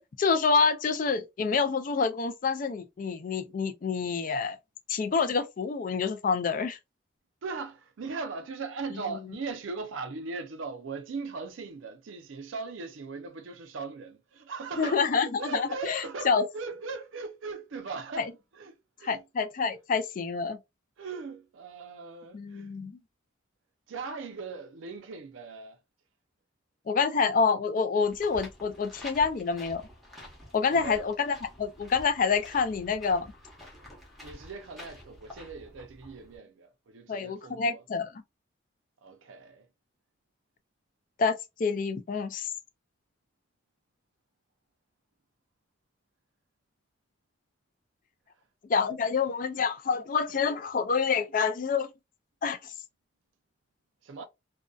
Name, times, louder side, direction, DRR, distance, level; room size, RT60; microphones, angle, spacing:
voice 1, 0.0-4.6 4.9-6.8 14.8-16.5 18.2-18.3 19.0-20.6 22.3-23.0 26.9-29.8 30.5-33.3 37.1-38.2 41.2-42.5 48.7-51.9 52.4-52.7, left 5 dB, 45° left, 0.3 m, -27 dB
voice 2, 7.4-18.3 18.5-19.2 21.0-22.7 23.9-25.8 30.7-31.2 34.2-37.8 39.0-39.7 54.0-54.3, right 4 dB, 85° right, 0.5 m, -39 dB
sound 1, 28.0-36.4, left 1 dB, ahead, 0.8 m, -49 dB
2.6 x 2.2 x 2.2 m
head